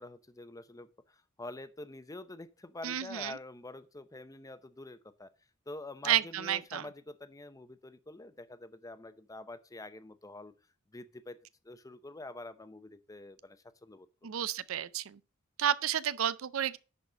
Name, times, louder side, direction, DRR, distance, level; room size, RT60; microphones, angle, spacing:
voice 1, 0.0-5.3 5.7-10.5 10.9-11.4 11.6-14.3, left 2 dB, 15° left, 0.7 m, -46 dB
voice 2, 2.8-3.4 6.0-6.8 14.2-15.2 15.6-16.8, right 10 dB, 75° right, 0.5 m, -31 dB
10.5 x 4.2 x 5.0 m
head